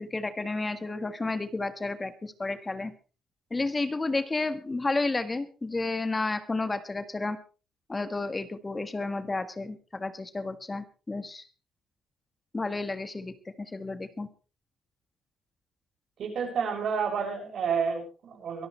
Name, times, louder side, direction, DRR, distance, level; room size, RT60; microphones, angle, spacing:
voice 1, 0.0-2.9 3.5-7.4 7.9-11.4 12.5-14.3, left 3 dB, 25° left, 11 dB, 1.5 m, -31 dB
voice 2, 16.2-18.7, right 6 dB, 65° right, 3 dB, 6.9 m, -30 dB
23.5 x 12.5 x 3.3 m, 0.34 s
cardioid pair, 90°, 0 cm